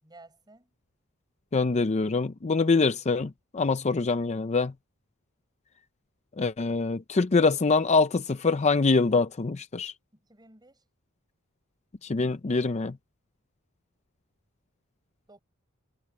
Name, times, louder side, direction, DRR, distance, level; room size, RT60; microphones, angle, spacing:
voice 1, 0.0-0.7 10.1-10.8 15.3-15.4, right 2 dB, 20° right, 7.0 m, -54 dB
voice 2, 1.5-4.7 6.4-9.9 12.0-12.9, left 4 dB, 30° left, 0.5 m, -24 dB
head